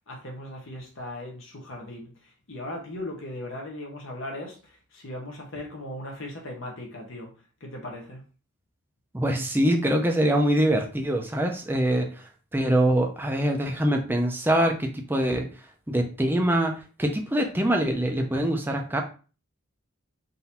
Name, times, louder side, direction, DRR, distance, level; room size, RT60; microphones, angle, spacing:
voice 1, 0.0-7.3 7.6-8.2, left 1 dB, 60° left, 1.0 m, -38 dB
voice 2, 9.1-12.1 12.5-15.5 15.9-19.0, right 1 dB, 10° right, 0.5 m, -24 dB
3.9 x 2.7 x 4.2 m
head